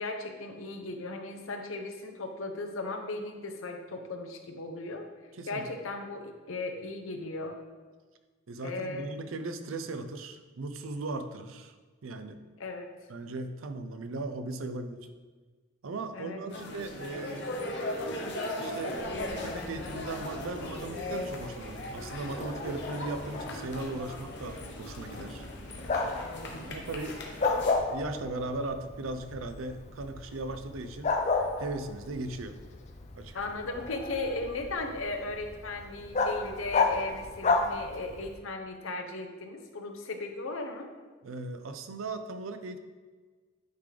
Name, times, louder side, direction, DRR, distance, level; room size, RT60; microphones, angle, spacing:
voice 1, 0.0-5.1 5.5-7.6 8.6-9.1 12.6-12.9 16.1-16.4 33.3-40.9, left 2 dB, 80° left, 5 dB, 0.7 m, -36 dB
voice 2, 5.3-5.6 8.5-11.7 12.0-12.4 13.1-15.1 15.8-17.7 18.6-19.0 19.4-25.5 26.7-27.4 27.9-31.2 31.6-32.6 33.1-33.4 41.2-42.8, right 2 dB, 85° right, 9 dB, 0.5 m, -38 dB
sound 1, 16.5-27.7, left 1 dB, 60° left, 0.9 m, -38 dB
Bark, 19.0-38.4, left 3 dB, 35° left, 0.5 m, -34 dB
9.1 x 3.8 x 3.3 m, 1.4 s
head